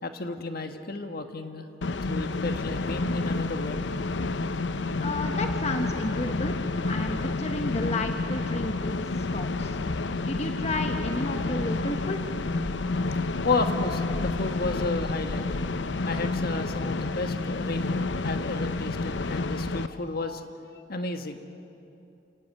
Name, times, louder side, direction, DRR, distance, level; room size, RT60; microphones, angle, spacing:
voice 1, 0.0-1.7 2.1-3.8 13.3-15.5 16.0-20.5 20.9-21.4, left 3 dB, 55° left, 6 dB, 1.5 m, -32 dB
sound 1, 1.8-19.9, left 3 dB, 80° left, 0.8 m, -29 dB
voice 2, 5.0-6.6 6.9-9.8 10.2-12.3, left 2 dB, 40° left, 4 dB, 1.2 m, -32 dB
27.5 x 18.5 x 8.7 m, 2.8 s
head